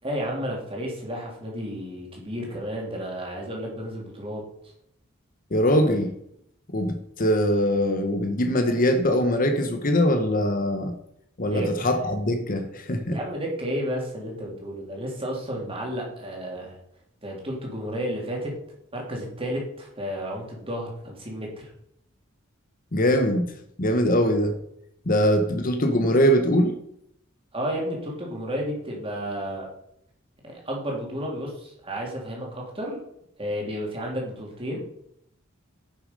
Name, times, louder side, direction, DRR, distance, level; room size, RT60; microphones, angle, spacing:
voice 1, 0.0-4.4 11.5-11.7 13.1-16.8 17.2-18.6 18.9-21.7 27.5-29.7 30.4-33.0 33.4-34.8, equal, 25° right, 3.2 m, -32 dB
voice 2, 5.5-6.1 6.7-10.9 11.4-13.2 22.9-23.5 23.8-24.6 25.1-26.8, equal, 40° left, 1.1 m, -22 dB
10.0 x 7.0 x 5.4 m
head